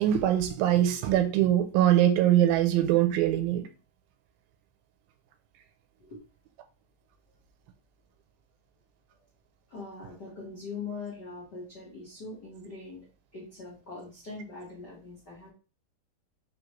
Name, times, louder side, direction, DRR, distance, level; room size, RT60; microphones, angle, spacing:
voice 1, 0.0-3.6, right 12 dB, 85° right, 2.4 m, -23 dB
voice 2, 9.7-15.5, left 4 dB, 80° left, 0.9 m, -42 dB
5.0 x 3.4 x 3.0 m
omnidirectional pair, 4.1 m